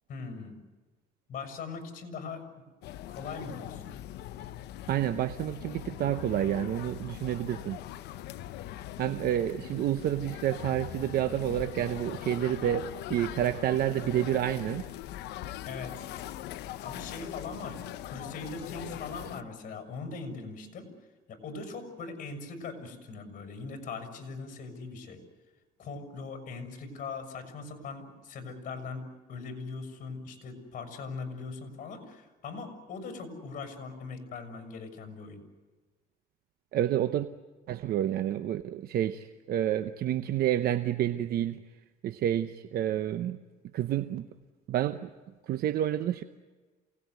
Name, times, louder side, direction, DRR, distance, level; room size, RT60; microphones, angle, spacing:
voice 1, 0.1-0.6 1.3-2.6 3.1-4.0 15.6-16.1 16.8-20.9 21.3-25.2 25.8-29.0 29.3-35.4, left 4 dB, 55° left, 8 dB, 6.6 m, -40 dB
sound 1, 2.8-19.4, left 13 dB, 80° left, 0.9 m, -41 dB
voice 2, 4.9-7.8 9.0-14.8 36.7-37.3 37.7-41.6 42.0-43.4 43.7-44.3 44.7-45.1 45.4-46.2, right 11 dB, 65° right, 10 dB, 0.9 m, -29 dB
28.0 x 19.0 x 9.5 m, 1.3 s
cardioid pair, 110°, 17 cm